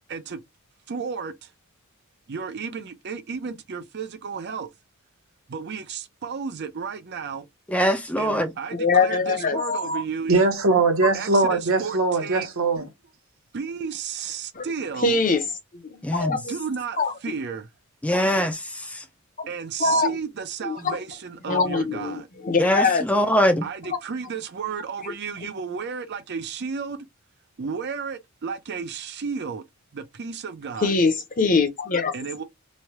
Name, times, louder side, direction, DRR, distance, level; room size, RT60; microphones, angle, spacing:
voice 1, 0.1-0.4 0.9-1.5 2.3-4.7 5.5-7.5 8.2-10.4 11.1-12.5 13.5-15.2 16.3-17.7 19.5-22.3 23.6-27.1 27.6-29.6 29.9-30.9 32.1-32.4, right 6 dB, 50° right, 0.5 m, -33 dB
voice 2, 7.7-8.5 16.0-16.4 18.0-19.0 22.6-23.7, equal, 5° left, 0.4 m, -22 dB
voice 3, 8.7-10.0 14.6-14.7 15.0-15.4 15.8-16.5 17.0-17.1 19.4-19.5 19.8-20.1 20.6-21.0 21.5-23.0 25.0-25.1 30.8-32.1, left 4 dB, 40° left, 0.7 m, -23 dB
voice 4, 10.3-12.9, right 3 dB, 65° right, 0.9 m, -21 dB
3.2 x 2.2 x 2.8 m
head